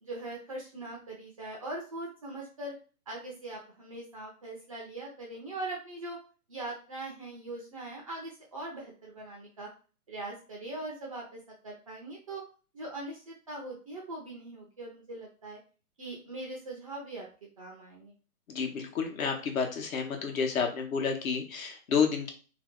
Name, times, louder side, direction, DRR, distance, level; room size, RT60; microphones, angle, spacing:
voice 1, 0.0-2.8 3.1-6.2 6.5-9.7 10.1-12.4 12.7-15.6 16.0-17.3 17.6-18.1, right 2 dB, 25° right, -2 dB, 0.4 m, -41 dB
voice 2, 18.5-22.3, left 6 dB, 65° left, 2 dB, 1.0 m, -30 dB
2.7 x 2.1 x 3.6 m, 0.36 s
hypercardioid pair, 145°, 45 cm